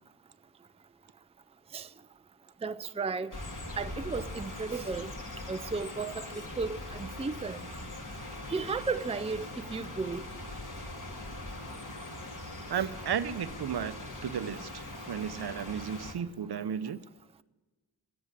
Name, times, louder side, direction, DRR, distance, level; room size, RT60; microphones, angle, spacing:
voice 1, 2.6-3.3 3.8-5.1 5.5-7.6 8.5-10.2 12.7-12.8, right 4 dB, 15° right, 0.5 m, -34 dB
sound 1, 3.3-16.1, left 1 dB, 40° left, 3.0 m, -41 dB
voice 2, 12.7-14.0 14.2-17.0, right 8 dB, 55° right, 0.8 m, -34 dB
13.5 x 10.0 x 9.7 m
cardioid pair, 50°, 45 cm